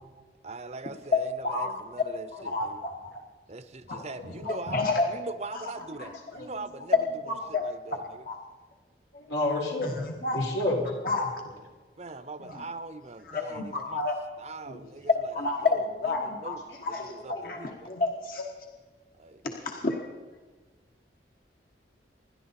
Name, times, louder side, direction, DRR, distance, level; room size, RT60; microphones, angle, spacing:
voice 1, 0.4-1.7 1.9-2.3 2.6-2.8 3.5-7.0 7.5-8.0 12.0-14.0 14.4-15.3 16.4-16.6 17.1-17.7 19.2-19.4, right 3 dB, 40° right, 12 dB, 0.7 m, -41 dB
voice 2, 1.1-1.8 2.3-3.1 3.9-5.1 5.5-5.7 6.3-6.4 6.9-8.4 9.8-10.4 11.0-11.3 12.4-12.6 13.2-14.4 15.1-18.5 19.4-20.0, left 3 dB, 55° left, 2 dB, 1.4 m, -30 dB
voice 3, 3.9-4.6 5.8-6.6 9.1-9.9 10.3-10.8 14.7-14.8 16.7-16.8 17.1-17.6 17.9-18.0, left 1 dB, 85° left, -1 dB, 4.3 m, -32 dB
27.0 x 11.5 x 4.2 m, 1.4 s
head